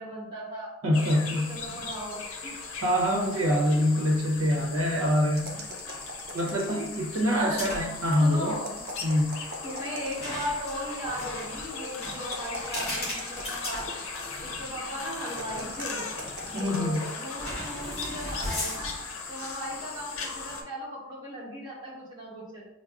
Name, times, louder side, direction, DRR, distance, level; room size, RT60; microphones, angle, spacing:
voice 1, 0.0-0.7 1.3-2.6 4.0-4.1 6.7-6.8 7.2-7.7 8.2-8.8 9.6-13.9 14.4-16.0 16.6-22.7, equal, 20° right, -7 dB, 1.1 m, -37 dB
voice 2, 0.8-1.5 2.8-5.5 6.3-8.6 9.0-9.4 16.5-17.1, left 1 dB, 85° right, -1 dB, 0.8 m, -25 dB
sound 1, 0.9-20.6, left 4 dB, 75° left, 0.6 m, -38 dB
sound 2, 5.4-7.2 8.5-10.5 12.0-13.9 15.2-17.1, right 1 dB, 45° right, 0.5 m, -42 dB
sound 3, 7.5-8.1 8.3-8.6 10.1-14.5 15.1-15.2 16.4-16.8 17.4-19.1, left 1 dB, 30° left, 1.3 m, -37 dB
5.8 x 2.0 x 2.4 m, 0.92 s
head